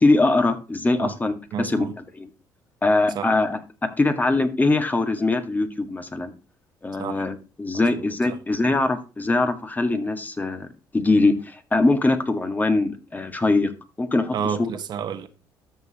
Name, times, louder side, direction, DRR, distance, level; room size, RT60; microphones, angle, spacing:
voice 1, 0.0-1.9 2.1-2.3 2.8-3.6 4.0-6.3 6.8-10.7 10.9-13.7 14.0-14.7, left 2 dB, 20° left, 1.8 m, -22 dB
voice 2, 1.5-1.9 3.1-3.3 7.0-7.2 7.7-8.1 14.3-15.3, right 7 dB, 60° right, 1.3 m, -30 dB
13.0 x 6.5 x 3.0 m
supercardioid pair, 80°, 8 cm